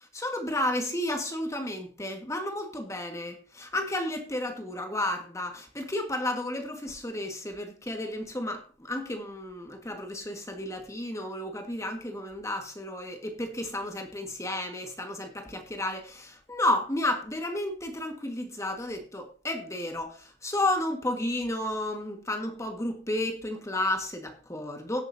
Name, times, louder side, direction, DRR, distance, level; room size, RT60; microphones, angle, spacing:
voice 1, 0.1-25.0, left 1 dB, 15° left, 1.7 m, -32 dB
17.5 x 8.1 x 2.8 m
head